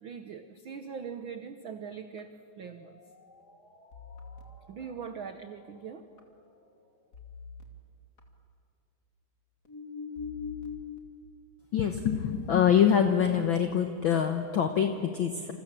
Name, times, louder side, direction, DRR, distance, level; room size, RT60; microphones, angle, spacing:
voice 1, 0.0-3.0 4.7-6.1, right 6 dB, 85° right, 8 dB, 1.1 m, -41 dB
sound 1, 2.2-6.8 7.1-7.6 8.2-8.3 9.6-11.0, left 6 dB, 30° left, 2.8 m, -44 dB
voice 2, 11.7-15.5, left 8 dB, 65° left, 5 dB, 1.3 m, -25 dB
28.0 x 28.0 x 7.4 m, 2.3 s
omnidirectional pair, 3.7 m